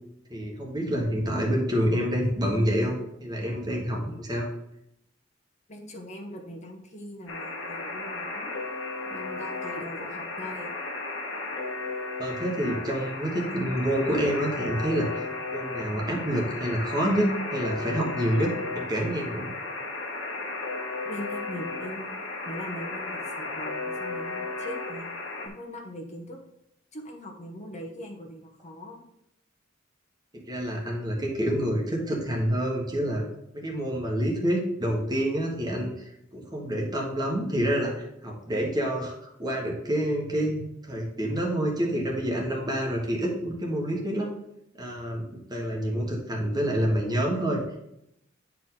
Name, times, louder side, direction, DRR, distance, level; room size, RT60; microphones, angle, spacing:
voice 1, 0.3-4.5 12.2-19.5 30.3-33.2 33.5-44.3 44.7-45.2 45.5-47.6, equal, 20° right, -1 dB, 1.4 m, -28 dB
voice 2, 5.7-8.5 9.0-10.7 21.0-22.2 22.4-25.1 25.4-26.4 26.9-29.0, equal, 35° left, 1 dB, 1.1 m, -41 dB
Alarm, 7.3-25.5, left 3 dB, 90° left, 1.4 m, -34 dB
9.4 x 4.7 x 3.8 m, 0.80 s
head